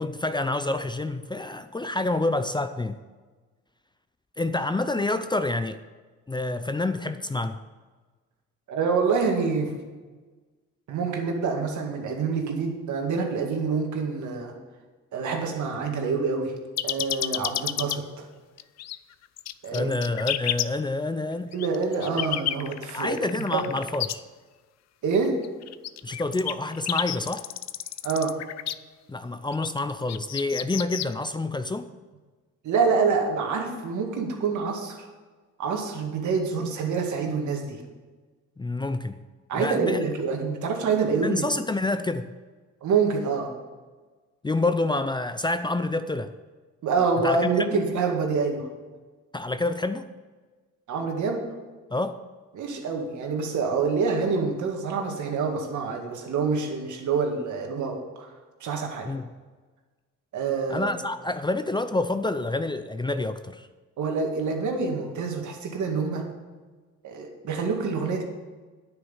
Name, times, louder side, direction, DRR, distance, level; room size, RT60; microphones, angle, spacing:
voice 1, 0.0-3.0 4.4-5.8 6.3-7.6 19.7-21.5 22.9-24.2 26.0-27.5 29.1-31.9 38.6-39.2 39.5-40.0 41.2-42.3 44.4-46.3 47.2-47.8 49.3-50.1 51.9-52.2 59.1-59.3 60.7-63.7, left 2 dB, 15° left, 11 dB, 0.5 m, -28 dB
voice 2, 8.7-9.7 10.9-14.5 15.1-16.5 16.8-18.3 19.6-20.0 21.5-23.7 25.0-25.3 28.0-28.3 32.6-35.1 35.6-37.8 39.5-41.4 42.8-43.5 46.8-48.7 50.9-51.4 52.5-58.3 58.6-59.1 60.3-60.9 64.0-66.2 67.0-68.2, right 5 dB, 75° right, 2 dB, 2.0 m, -26 dB
sound 1, 16.8-18.0 18.6-19.0 19.4-20.7 21.5-24.1 25.4-28.7 29.5-31.1, left 12 dB, 60° left, 0.5 m, -30 dB
9.5 x 8.6 x 5.6 m, 1.3 s
cardioid pair, 90°, 30 cm